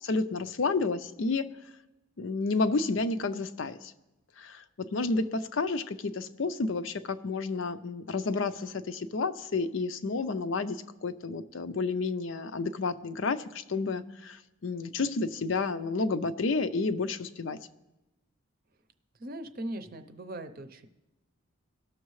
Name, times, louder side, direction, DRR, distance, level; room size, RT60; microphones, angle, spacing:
voice 1, 0.0-1.5 2.2-3.9 4.4-17.6, left 3 dB, 65° left, 11 dB, 0.5 m, -30 dB
voice 2, 19.2-20.9, right 1 dB, 45° right, 8 dB, 0.6 m, -39 dB
18.0 x 6.5 x 3.1 m, 0.98 s
head